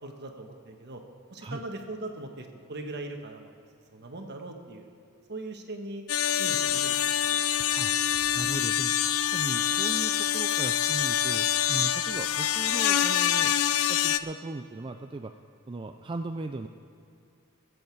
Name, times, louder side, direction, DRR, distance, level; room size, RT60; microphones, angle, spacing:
voice 1, 0.0-1.0 1.3-3.5 3.9-4.9 5.3-6.0 6.4-7.4, right 2 dB, 50° right, 4 dB, 1.4 m, -40 dB
sound 1, 6.1-14.2, left 10 dB, 70° left, 0.5 m, -26 dB
voice 2, 8.3-13.6 13.9-15.3 15.7-16.7, right 2 dB, 20° right, 5 dB, 0.4 m, -37 dB
21.5 x 7.9 x 4.7 m, 2.7 s
head